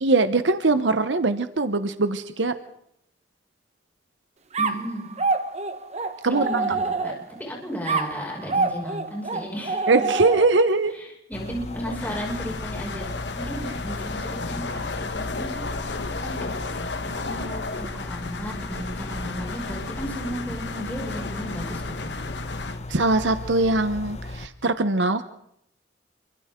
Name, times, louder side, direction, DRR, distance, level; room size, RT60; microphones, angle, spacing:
voice 1, 0.0-2.5 6.2-6.5 9.9-10.9 22.9-25.2, right 3 dB, 90° right, 10 dB, 1.0 m, -21 dB
sound 1, 4.5-7.4 7.9-10.7, right 4 dB, 40° right, 1.2 m, -27 dB
voice 2, 4.6-5.1 6.3-7.1 7.4-10.1 10.9-13.1 13.3-16.8 17.1-22.1, equal, 10° left, -2 dB, 6.0 m, -34 dB
sound 2, 11.3-24.5, left 2 dB, 40° left, 1.1 m, -36 dB
sound 3, 11.7-22.8, left 3 dB, 70° left, 1.3 m, -34 dB
28.0 x 25.0 x 3.8 m, 0.75 s
head